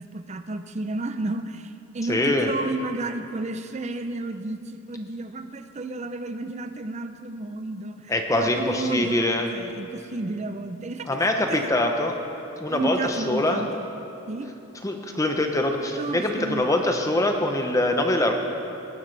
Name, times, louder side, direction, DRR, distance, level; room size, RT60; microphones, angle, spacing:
voice 1, 0.0-11.7 12.7-13.8 14.3-14.5 16.0-16.7, right 2 dB, 35° right, 9 dB, 0.5 m, -32 dB
voice 2, 2.1-2.5 8.1-9.5 11.1-12.2 12.6-13.6 14.8-18.3, left 1 dB, 15° left, 4 dB, 0.8 m, -24 dB
18.5 x 10.5 x 3.3 m, 3.0 s
head